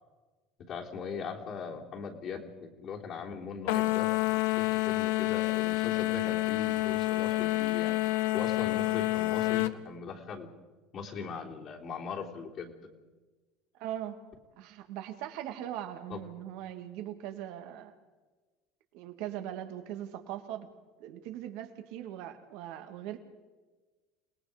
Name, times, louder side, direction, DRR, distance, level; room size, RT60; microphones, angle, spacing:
voice 1, 0.7-8.0 8.3-10.5 10.9-12.7 16.1-16.2, left 5 dB, 55° left, -2 dB, 3.5 m, -40 dB
sound 1, 3.7-9.8, left 18 dB, 80° left, 0.8 m, -28 dB
voice 2, 13.8-14.2 14.6-17.9 18.9-20.7 21.0-23.2, right 11 dB, 70° right, 7 dB, 2.2 m, -40 dB
28.5 x 19.0 x 5.2 m, 1.3 s
supercardioid pair, 90°, 0 cm